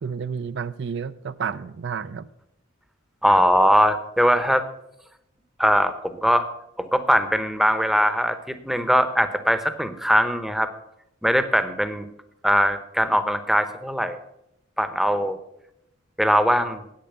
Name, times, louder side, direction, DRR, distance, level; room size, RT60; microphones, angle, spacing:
voice 1, 0.0-2.3, right 6 dB, 60° right, 14 dB, 0.4 m, -30 dB
voice 2, 3.2-4.6 5.6-6.5 6.8-10.7 11.2-12.1 12.4-14.2 14.8-15.4 16.2-16.8, equal, ahead, 10 dB, 0.8 m, -21 dB
10.5 x 8.6 x 6.8 m, 0.82 s
head